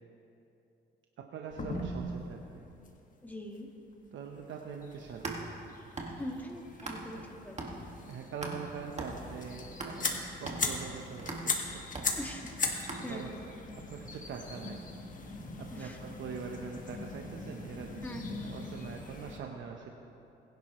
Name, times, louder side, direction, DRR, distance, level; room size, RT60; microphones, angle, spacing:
voice 1, 1.2-2.6 4.1-5.4 7.1-7.2 8.0-11.8 13.1-13.3 13.9-14.8 15.6-18.0 18.3-19.9, right 6 dB, 70° right, 1 dB, 1.0 m, -43 dB
sound 1, 1.5-2.3 2.8-2.9 3.3-3.4 4.2-19.4, left 3 dB, 40° left, 1.7 m, -40 dB
voice 2, 3.2-3.7 6.2-7.7 12.2-12.6 13.0-13.4 15.7-16.0 18.0-18.5, equal, 10° left, 0 dB, 1.9 m, -42 dB
sound 2, 5.0-7.3 7.6-13.5, right 2 dB, 35° right, 2.0 m, -42 dB
21.5 x 10.5 x 3.1 m, 2.9 s
cardioid pair, 90°, 20 cm